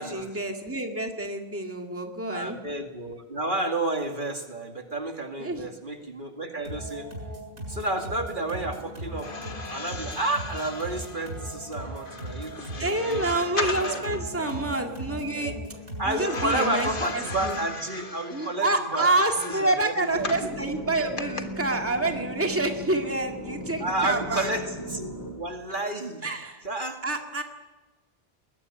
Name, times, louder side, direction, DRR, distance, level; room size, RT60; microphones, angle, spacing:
voice 1, 0.0-2.6 5.4-5.6 12.8-15.5 16.1-17.6 18.3-24.5 26.2-26.6 27.0-27.4, right 2 dB, 10° right, 4 dB, 2.1 m, -28 dB
voice 2, 2.3-7.1 7.7-9.3 9.7-13.3 13.7-14.5 14.8-15.0 15.3-15.5 16.0-19.1 19.4-20.8 23.8-25.0 25.4-26.2 26.6-27.0, right 2 dB, 45° right, 4 dB, 2.4 m, -31 dB
sound 1, 6.6-17.7, right 1 dB, 75° right, 7.0 m, -38 dB
sound 2, 9.1-14.3 16.2-20.5 21.2-21.4, left 3 dB, 50° left, 1.8 m, -36 dB
sound 3, 20.1-25.3, equal, 20° left, 5.6 m, -37 dB
21.5 x 19.5 x 9.8 m, 1.2 s
omnidirectional pair, 1.2 m